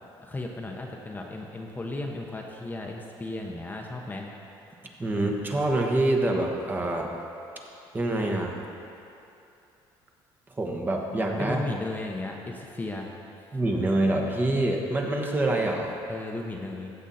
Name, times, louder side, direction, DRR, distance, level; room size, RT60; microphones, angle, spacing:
voice 1, 0.2-4.3 11.4-13.1 16.1-16.9, left 2 dB, 20° left, 0 dB, 1.0 m, -35 dB
voice 2, 5.0-7.1 7.9-8.6 10.5-11.6 13.5-15.9, right 2 dB, 20° right, 1 dB, 1.2 m, -26 dB
15.0 x 7.2 x 4.2 m, 2.8 s
cardioid pair, 115°, 9 cm